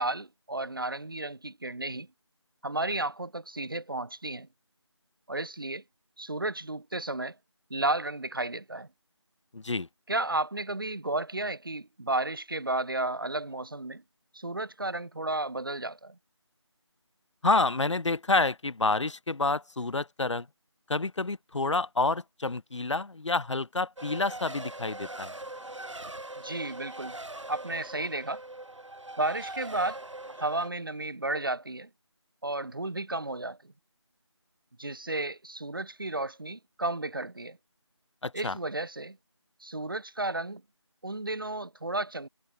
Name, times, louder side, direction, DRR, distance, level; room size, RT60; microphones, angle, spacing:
voice 1, 0.0-2.1 2.6-4.5 5.3-5.8 6.2-7.4 7.7-8.9 10.1-14.0 14.3-16.2 26.4-27.2 27.5-28.4 29.2-30.0 30.3-31.9 32.4-33.6 34.8-37.6 38.3-39.2 39.6-40.6 41.0-42.3, right 2 dB, 45° right, 0.7 m, -33 dB
voice 2, 9.5-9.9 17.4-20.5 20.9-25.3 38.2-38.6, left 3 dB, 70° left, 0.7 m, -28 dB
Race car auto racing, 24.0-30.7, right 2 dB, 75° right, 2.2 m, -41 dB
figure-of-eight pair, 175°, 16 cm